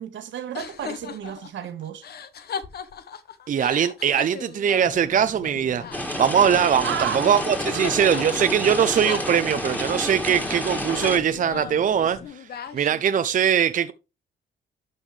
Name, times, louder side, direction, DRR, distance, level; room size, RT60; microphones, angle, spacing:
voice 1, 0.0-2.1 6.8-7.2 7.7-8.3, right 9 dB, 70° right, 1.4 m, -32 dB
sound 1, 0.5-7.0 7.3-9.9 10.3-13.2, left 7 dB, 55° left, 1.0 m, -38 dB
voice 2, 3.5-12.5 12.7-13.9, right 8 dB, 40° right, 0.5 m, -21 dB
sound 2, 4.8-12.3, left 4 dB, 35° left, 2.9 m, -43 dB
sound 3, 5.9-11.2, left 1 dB, 10° left, 2.2 m, -29 dB
11.5 x 5.6 x 3.3 m
cardioid pair, 90°, 20 cm